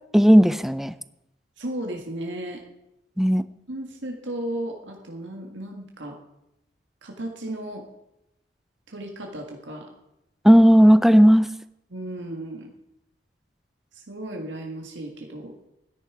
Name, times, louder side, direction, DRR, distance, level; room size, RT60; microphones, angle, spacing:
voice 1, 0.1-0.9 3.2-3.4 10.4-11.5, equal, ahead, 14 dB, 0.4 m, -14 dB
voice 2, 1.6-2.6 3.7-6.2 7.0-7.8 8.9-9.9 11.9-12.7 13.9-15.6, right 1 dB, 80° right, 2 dB, 1.7 m, -34 dB
13.5 x 10.5 x 4.8 m, 0.86 s
head